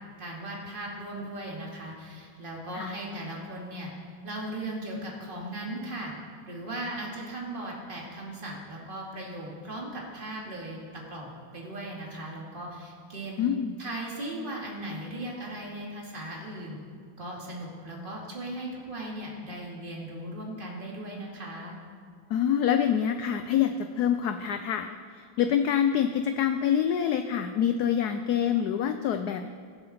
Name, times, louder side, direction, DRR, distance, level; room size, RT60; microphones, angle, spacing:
voice 1, 0.2-3.9 4.2-6.1 6.5-13.4 13.8-16.8 17.2-21.8, right 1 dB, 25° right, -2 dB, 2.4 m, -38 dB
voice 2, 13.4-13.7 22.3-29.5, left 9 dB, 70° left, 8 dB, 0.9 m, -26 dB
21.0 x 7.7 x 4.3 m, 2.2 s
omnidirectional pair, 2.1 m